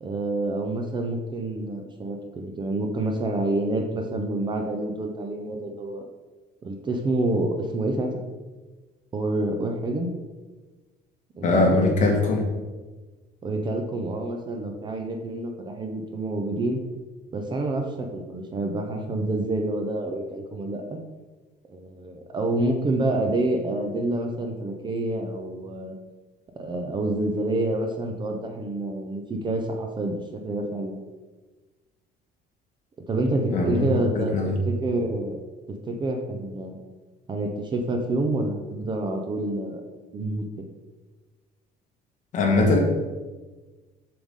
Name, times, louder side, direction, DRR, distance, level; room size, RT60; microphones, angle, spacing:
voice 1, 0.0-6.0 6.6-8.2 9.1-10.1 11.4-11.9 13.4-16.8 17.3-21.0 21.7-26.0 26.6-31.1 33.1-34.3 34.7-35.4 35.7-36.8 37.3-39.8 40.1-40.7, right 2 dB, 25° right, 3 dB, 0.7 m, -28 dB
voice 2, 11.4-12.5 33.5-34.6 42.3-42.8, left 2 dB, 45° left, 0 dB, 1.6 m, -21 dB
7.2 x 6.8 x 3.7 m, 1.3 s
cardioid pair, 165°, 18 cm